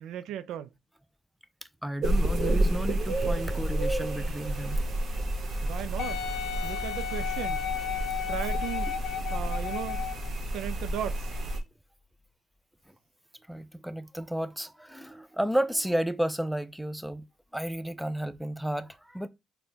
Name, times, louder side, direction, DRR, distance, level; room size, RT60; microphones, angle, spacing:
voice 1, 0.0-0.7 5.6-6.2 6.6-7.6 8.3-8.9 9.3-10.0 10.5-11.3, right 10 dB, 90° right, 0.3 m, -36 dB
voice 2, 1.8-4.8 13.5-17.2 17.5-19.3, right 1 dB, ahead, 0.4 m, -32 dB
sound 1, 2.0-11.6, right 1 dB, 60° right, 1.0 m, -30 dB
Wind instrument woodwind instrument, 6.0-10.3 11.0-11.1, left 10 dB, 75° left, 0.6 m, -34 dB
4.3 x 2.2 x 3.8 m
cardioid pair, 90°, 0 cm